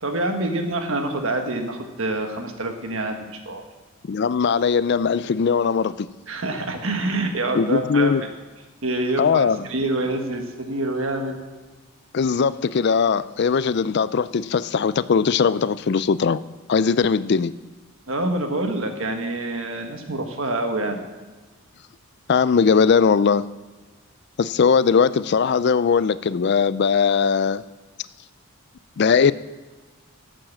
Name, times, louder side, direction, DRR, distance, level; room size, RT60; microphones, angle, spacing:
voice 1, 0.0-3.6 6.3-8.1 8.8-11.4 18.1-21.0, right 2 dB, 65° right, 1.5 m, -26 dB
voice 2, 4.0-6.1 7.5-8.2 9.2-9.6 12.1-16.4 16.7-17.5 22.3-23.5 24.4-27.6 29.0-29.3, left 6 dB, 50° left, 0.4 m, -19 dB
12.0 x 7.7 x 7.3 m
head